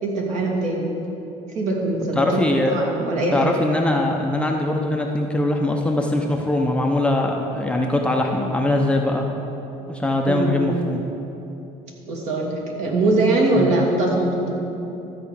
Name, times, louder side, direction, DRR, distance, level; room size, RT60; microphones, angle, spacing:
voice 1, 0.0-0.9 1.5-3.5 10.3-10.7 12.1-14.4, right 2 dB, 55° right, -2 dB, 2.5 m, -22 dB
voice 2, 2.2-2.7 3.3-9.3 9.9-11.0 13.6-13.7, left 1 dB, 10° left, 1 dB, 0.7 m, -21 dB
13.0 x 5.0 x 8.5 m, 2.9 s
cardioid pair, 130°, 14 cm